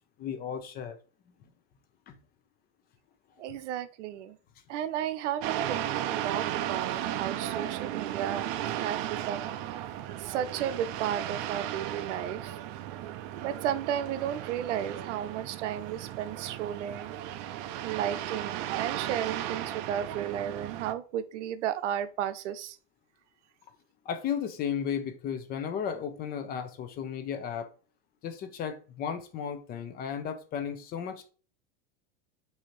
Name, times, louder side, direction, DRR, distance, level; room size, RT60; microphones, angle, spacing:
voice 1, 0.2-1.0 2.1-2.2 24.0-27.7 28.2-31.3, left 8 dB, 25° left, 0.6 m, -34 dB
voice 2, 3.4-4.4 4.7-8.5 8.7-9.5 10.2-12.6 13.4-17.1 17.8-22.8, right 10 dB, 85° right, 0.7 m, -33 dB
sound 1, 5.4-20.9, right 11 dB, 45° right, 0.5 m, -35 dB
6.3 x 2.8 x 3.0 m
supercardioid pair, 145°, 35 cm